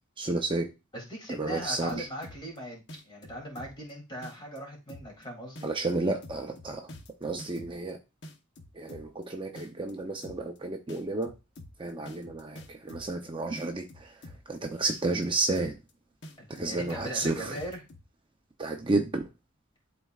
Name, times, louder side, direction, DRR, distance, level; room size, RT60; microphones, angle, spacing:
voice 1, 0.2-0.7 1.4-2.1 5.6-6.9 7.2-8.0 8.7-11.3 11.8-14.1 14.5-15.8 16.5-17.6 18.6-19.2, right 2 dB, 25° right, 0.6 m, -31 dB
voice 2, 0.9-5.7 16.4-17.8, equal, 25° left, 2.8 m, -39 dB
sound 1, 1.6-2.6 2.9-3.9 4.2-4.6 4.9-5.2 5.6-7.9 8.2-9.2 9.6-9.9 10.2-10.6 10.9-13.2 13.6-14.6 14.9-15.2 15.6-15.9 16.2-18.0, left 1 dB, 55° left, 1.0 m, -47 dB
11.5 x 4.2 x 2.4 m
head